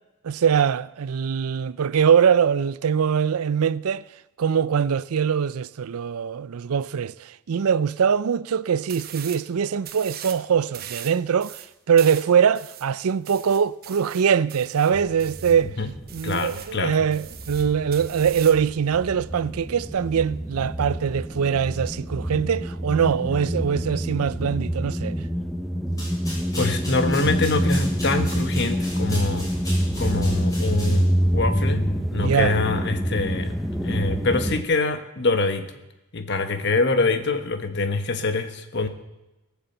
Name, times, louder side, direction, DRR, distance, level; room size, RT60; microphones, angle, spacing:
voice 1, 0.2-4.0 4.4-15.7 16.1-25.2 32.2-32.6, right 7 dB, 80° right, 0.4 m, -22 dB
sound 1, 8.9-9.5 9.8-10.4 10.7-15.6 16.1-16.8 17.1-18.7, right 11 dB, 45° right, 0.9 m, -40 dB
sound 2, 14.9-16.6 16.8-34.6, equal, ahead, 0.7 m, -27 dB
voice 2, 16.2-16.9 26.5-29.5 30.0-31.8 32.1-33.5 33.8-35.7 36.1-38.9, left 3 dB, 50° left, 1.3 m, -25 dB
sound 3, 25.9-31.2, left 1 dB, 15° left, 6.4 m, -38 dB
18.0 x 7.1 x 8.0 m
head